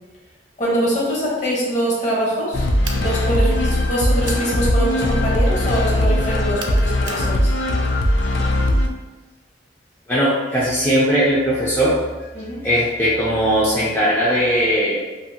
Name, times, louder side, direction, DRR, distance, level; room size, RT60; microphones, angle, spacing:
voice 1, 0.6-2.7 2.9-7.5 12.3-12.6, right 1 dB, 40° left, -5 dB, 0.9 m, -23 dB
sound 1, 2.5-8.9, left 1 dB, 90° left, 0.4 m, -19 dB
Pull switch, 2.8-3.1 4.2-4.5 6.6-7.3, right 4 dB, 80° right, 0.4 m, -33 dB
voice 2, 10.1-12.3 12.6-15.0, equal, 10° left, -9 dB, 0.5 m, -19 dB
2.6 x 2.5 x 2.7 m, 1.2 s
head